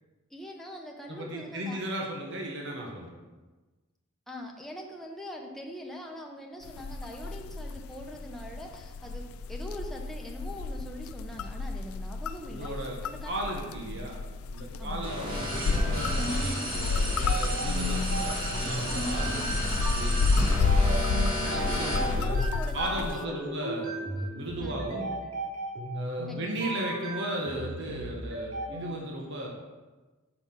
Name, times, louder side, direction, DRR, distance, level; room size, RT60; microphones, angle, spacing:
voice 1, 0.3-1.8 4.3-12.7 13.0-13.4 13.9-14.1 14.8-15.1 21.4-23.6 24.6-25.1 26.3-26.5, equal, ahead, 0 dB, 0.8 m, -42 dB
voice 2, 1.1-3.2 12.5-13.0 13.2-14.2 14.5-20.2 20.5-20.7 21.5-22.4 22.7-25.1 25.9-29.5, right 1 dB, 60° right, -1 dB, 1.1 m, -36 dB
sound 1, 6.6-23.2, left 4 dB, 80° left, 0.3 m, -31 dB
sound 2, 15.0-22.1, equal, 25° right, 1.7 m, -32 dB
sound 3, 15.7-29.0, right 1 dB, 85° right, 1.6 m, -36 dB
6.0 x 5.6 x 5.7 m, 1.2 s
head